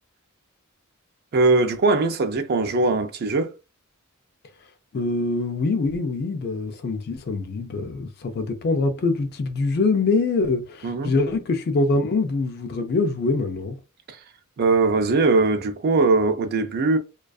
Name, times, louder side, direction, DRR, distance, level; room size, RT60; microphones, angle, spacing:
voice 1, 1.3-3.5 10.8-11.1 14.1-14.2 14.6-17.0, right 3 dB, 45° right, 0.4 m, -20 dB
voice 2, 4.9-13.8, left 3 dB, 45° left, 0.4 m, -24 dB
2.4 x 2.3 x 2.3 m
head